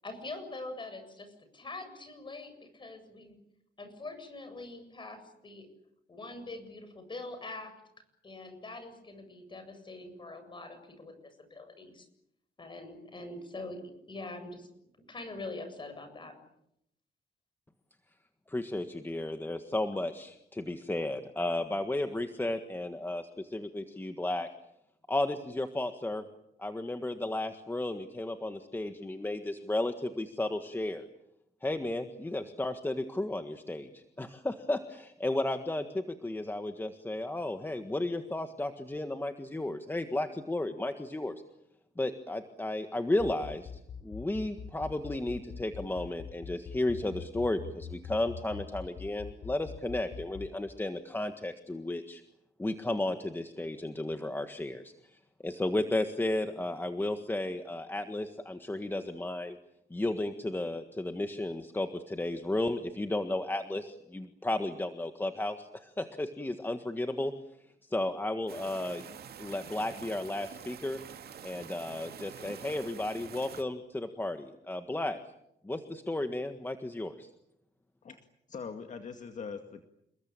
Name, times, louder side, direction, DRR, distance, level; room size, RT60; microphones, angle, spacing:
voice 1, 0.0-3.4 3.8-5.7 6.1-7.7 8.2-12.1 12.6-14.7 15.1-16.3, left 2 dB, 30° left, 8 dB, 7.8 m, -44 dB
voice 2, 18.5-24.5 25.1-26.2 26.6-31.0 31.6-41.3 42.0-43.7 44.0-52.2 52.6-59.6 59.9-67.3 67.9-69.0 69.4-71.0 71.4-75.2 75.6-77.3, left 1 dB, 10° left, 7 dB, 1.6 m, -33 dB
sound 1, 43.2-50.5, left 7 dB, 65° left, 3.6 m, -42 dB
sound 2, 68.5-73.6, right 8 dB, 70° right, 2.2 m, -47 dB
voice 3, 78.5-79.8, left 5 dB, 45° left, 6 dB, 2.1 m, -41 dB
29.0 x 21.5 x 9.0 m, 0.80 s
cardioid pair, 135°, 17 cm